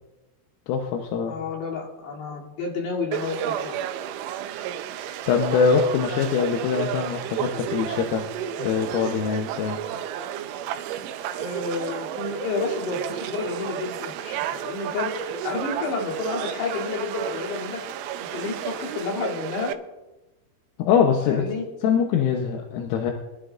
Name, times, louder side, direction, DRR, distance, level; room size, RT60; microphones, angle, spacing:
voice 1, 0.7-1.3 4.5-4.7 5.3-8.3 8.6-9.8 20.8-21.4 21.8-23.1, left 6 dB, 80° left, 2 dB, 3.5 m, -23 dB
voice 2, 1.3-3.7 11.4-17.8 18.2-19.7 21.2-21.6, left 4 dB, 60° left, -4 dB, 4.8 m, -30 dB
Conversation / Crowd, 3.1-19.7, right 10 dB, 80° right, 3.0 m, -32 dB
26.0 x 12.5 x 2.5 m, 1.1 s
omnidirectional pair, 5.9 m